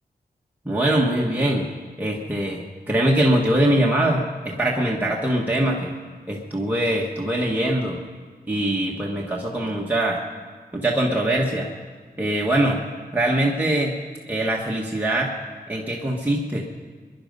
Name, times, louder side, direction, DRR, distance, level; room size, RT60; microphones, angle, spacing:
voice 1, 0.6-1.7 2.0-5.9 6.3-8.0 8.5-10.2 10.7-11.7 12.2-12.8 13.1-13.9 14.3-15.3 15.7-16.6, right 1 dB, 10° right, -3 dB, 1.4 m, -22 dB
23.5 x 11.0 x 5.4 m, 1.5 s
wide cardioid pair, 125°, 17 cm